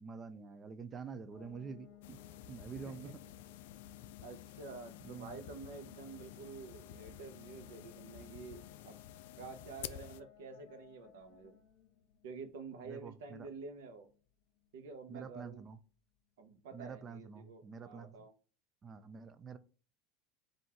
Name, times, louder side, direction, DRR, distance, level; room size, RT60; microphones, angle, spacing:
voice 1, 0.0-2.2 2.5-3.2 5.0-5.4 12.8-13.5 15.1-15.8 16.7-18.2 18.8-19.6, right 5 dB, 20° right, 0.3 m, -47 dB
sound 1, 1.3-15.9, left 14 dB, 50° left, 1.0 m, -59 dB
sound 2, 2.0-10.2, left 11 dB, 75° left, 0.3 m, -51 dB
voice 2, 4.2-9.0 9.4-11.5 12.2-14.1 14.7-15.7 16.4-18.3, right 4 dB, 90° right, 0.9 m, -49 dB
3.9 x 2.6 x 4.4 m
supercardioid pair, 170°, 0 cm